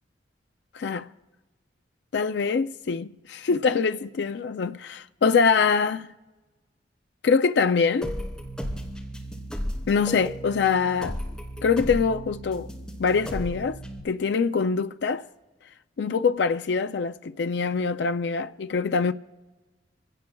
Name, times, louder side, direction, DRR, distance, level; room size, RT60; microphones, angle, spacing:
voice 1, 0.7-1.1 2.1-6.1 7.2-8.1 9.9-11.2 11.6-12.7 13.0-13.8 14.0-15.3 16.0-19.1, left 5 dB, 65° left, 0.4 m, -24 dB
sound 1, 8.0-14.0, equal, 5° left, 2.5 m, -34 dB
27.0 x 17.5 x 2.3 m
head